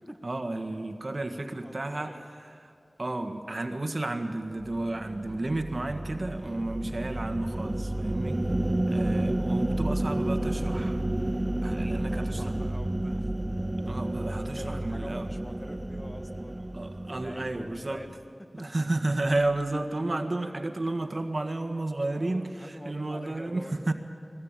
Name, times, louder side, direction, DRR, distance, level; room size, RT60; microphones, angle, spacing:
voice 1, 0.2-2.1 2.6-2.7 3.0-8.4 8.9-11.0 11.6-12.4 13.9-15.3 16.7-18.0 18.6-23.9, right 2 dB, 50° right, 6 dB, 1.6 m, -32 dB
voice 2, 1.6-2.2 11.4-13.3 14.2-16.8 17.1-18.3 18.7-18.9 21.8-23.9, equal, 10° left, 6 dB, 1.6 m, -46 dB
sound 1, 4.6-18.1, right 1 dB, 25° right, 0.6 m, -31 dB
21.5 x 17.5 x 9.0 m, 2.4 s
wide cardioid pair, 50°, 0 cm